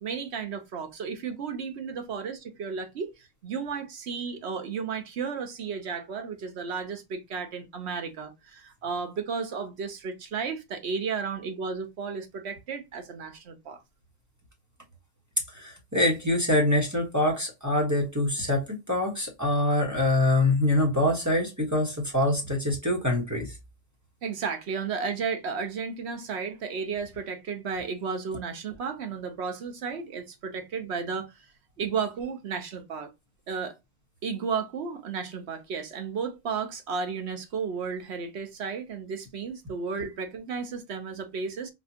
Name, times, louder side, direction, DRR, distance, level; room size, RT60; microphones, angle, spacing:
voice 1, 0.0-13.8 24.2-31.3 31.8-33.1 33.5-33.7 34.2-41.7, right 5 dB, 65° right, 1.1 m, -33 dB
voice 2, 15.5-23.6, left 1 dB, 15° right, 1.2 m, -25 dB
4.2 x 2.4 x 2.7 m
omnidirectional pair, 1.2 m